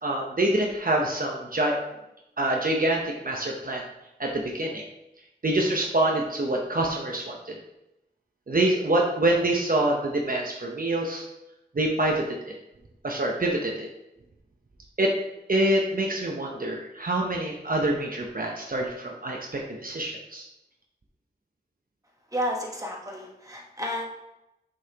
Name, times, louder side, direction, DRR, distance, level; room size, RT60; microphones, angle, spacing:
voice 1, 0.0-1.9 2.4-3.8 4.2-4.8 5.4-7.6 8.5-11.2 11.7-12.5 13.0-13.9 15.0-15.1 15.5-20.4, right 1 dB, 50° right, -1 dB, 0.8 m, -26 dB
voice 2, 22.3-24.1, equal, 20° right, -1 dB, 1.3 m, -31 dB
6.5 x 5.5 x 2.9 m, 0.90 s
wide cardioid pair, 65°, 18 cm